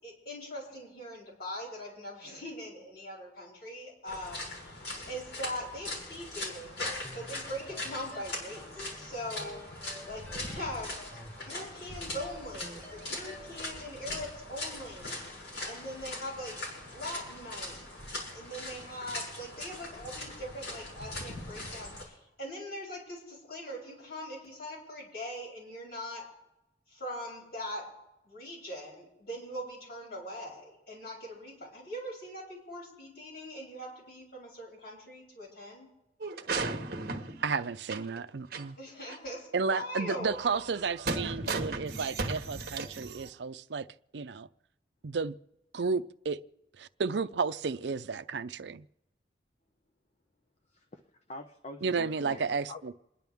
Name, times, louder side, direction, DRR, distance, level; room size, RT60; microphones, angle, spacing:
voice 1, 0.0-4.8 5.1-6.8 7.1-9.6 10.1-11.0 11.4-15.2 15.7-16.6 16.9-17.8 18.3-26.3 26.9-27.9 28.2-35.9 38.8-40.4 41.1-41.5, equal, 60° left, 7.3 m, -41 dB
sound 1, 4.1-22.0, left 1 dB, 80° left, 6.7 m, -41 dB
sound 2, 6.8-13.7, left 1 dB, 10° left, 0.7 m, -50 dB
sound 3, 36.2-38.2 38.5-38.6 39.1-39.2 40.3-43.3, right 3 dB, 55° right, 1.2 m, -35 dB
voice 2, 37.4-38.8 39.5-43.9 44.1-44.5 45.0-45.4 45.7-46.4 46.8-48.9 51.8-52.9, right 5 dB, 75° right, 0.5 m, -32 dB
voice 3, 50.7-52.8, left 1 dB, 40° left, 0.9 m, -45 dB
28.5 x 11.0 x 3.6 m
head